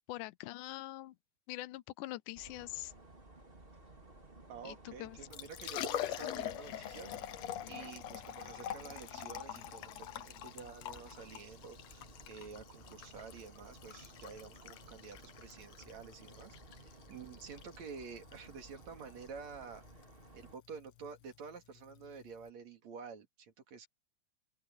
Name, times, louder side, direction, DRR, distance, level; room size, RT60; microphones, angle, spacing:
voice 1, 0.1-1.2 1.5-2.9 4.6-5.2 7.6-7.9, left 17 dB, 90° left, 2.1 m, -44 dB
sound 1, 2.3-20.6, right 2 dB, 15° right, 3.2 m, -57 dB
voice 2, 4.5-7.2 7.6-16.6 17.1-19.8 20.3-23.9, right 5 dB, 65° right, 3.6 m, -50 dB
Liquid, 5.1-22.5, left 11 dB, 65° left, 2.0 m, -45 dB
open air
omnidirectional pair, 3.5 m